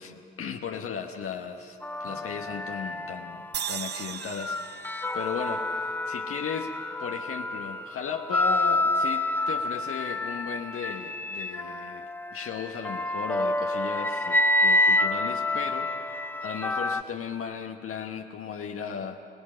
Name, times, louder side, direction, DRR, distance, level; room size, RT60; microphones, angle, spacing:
voice 1, 0.0-4.8 5.1-6.7 7.0-19.3, left 7 dB, 45° left, 4 dB, 1.2 m, -36 dB
sound 1, 1.8-3.7 4.2-17.0, left 2 dB, 5° left, 0.6 m, -28 dB
Strum, 2.0-6.7 7.1-7.3, right 2 dB, 60° right, 3.2 m, -57 dB
sound 2, 3.5-6.8, right 8 dB, 35° right, 0.7 m, -38 dB
26.5 x 19.5 x 6.3 m, 2.7 s
figure-of-eight pair, 45°, 31 cm